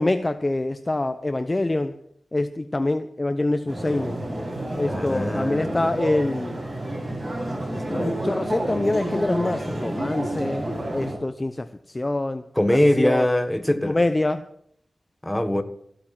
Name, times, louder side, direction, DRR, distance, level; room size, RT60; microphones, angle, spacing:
voice 1, 0.0-1.9 2.3-4.2 4.8-6.6 7.7-10.6 10.9-12.4 12.7-13.3 13.8-14.4, left 2 dB, 30° left, 0.7 m, -25 dB
sound 1, 3.7-11.2, right 1 dB, 45° right, 6.9 m, -30 dB
voice 2, 4.9-5.9 12.5-14.0 15.2-15.6, left 1 dB, 10° left, 1.5 m, -22 dB
15.0 x 8.9 x 7.6 m
wide cardioid pair, 80°, 0 cm